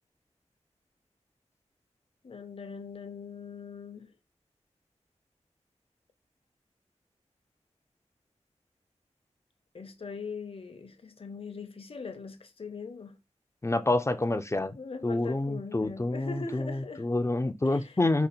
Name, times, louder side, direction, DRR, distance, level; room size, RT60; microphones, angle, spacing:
voice 1, 2.2-4.1 9.7-13.2 14.8-17.1 17.6-17.9, left 5 dB, 50° left, 0.8 m, -41 dB
voice 2, 13.6-14.8 15.0-18.3, left 2 dB, 25° left, 0.5 m, -28 dB
5.1 x 2.1 x 4.2 m
wide cardioid pair, 80°, 12 cm